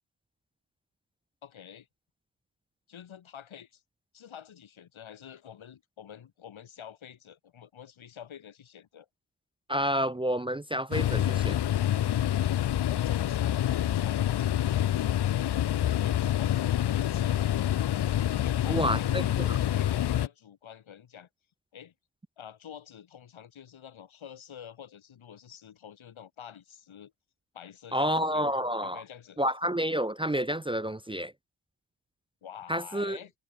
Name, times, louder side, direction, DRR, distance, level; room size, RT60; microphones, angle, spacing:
voice 1, 1.4-1.9 2.9-3.8 4.1-9.1 12.9-14.7 15.6-16.6 16.9-17.7 18.4-19.3 19.7-21.3 21.7-21.9 22.4-27.1 27.5-28.5 28.8-29.4 32.4-33.3, left 9 dB, 90° left, 6.8 m, -48 dB
voice 2, 9.7-11.6 18.7-19.6 27.9-29.0 29.4-31.3 32.7-33.2, equal, 10° right, 0.5 m, -29 dB
sound 1, 10.9-20.3, left 11 dB, 60° left, 0.7 m, -27 dB
cardioid pair, 60°, 46 cm